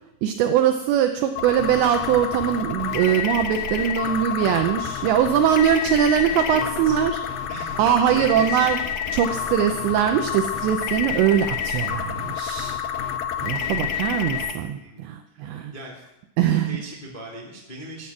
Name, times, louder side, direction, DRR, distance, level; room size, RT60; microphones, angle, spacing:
voice 1, 0.2-7.2 7.8-8.8 9.1-12.8 13.4-15.7 16.4-16.8, right 10 dB, 80° right, 7 dB, 2.5 m, -21 dB
sound 1, 1.4-14.5, left 8 dB, 70° left, 2.5 m, -28 dB
voice 2, 6.5-7.1 7.5-7.8 8.1-8.7 13.6-14.0 14.7-15.9 16.3-18.1, equal, 20° left, -2 dB, 1.2 m, -39 dB
14.0 x 10.5 x 7.2 m, 0.93 s
omnidirectional pair, 5.9 m